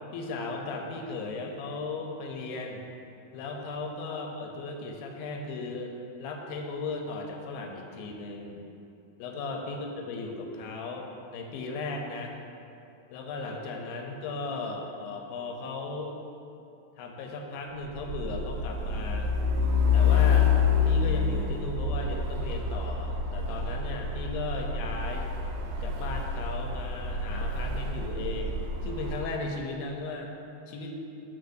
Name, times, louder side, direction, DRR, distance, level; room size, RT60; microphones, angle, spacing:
voice 1, 0.1-2.8 3.3-5.9 6.2-8.6 9.2-11.1 11.3-12.3 13.1-16.2 17.0-19.3 19.9-20.5 20.8-25.3 25.8-28.6 28.8-30.3 30.7-30.9, left 3 dB, 80° left, 2 dB, 2.5 m, -36 dB
Truck, 18.0-29.3, left 5 dB, 80° right, 1.9 m, -27 dB
13.0 x 4.5 x 2.6 m, 2.7 s
omnidirectional pair, 4.2 m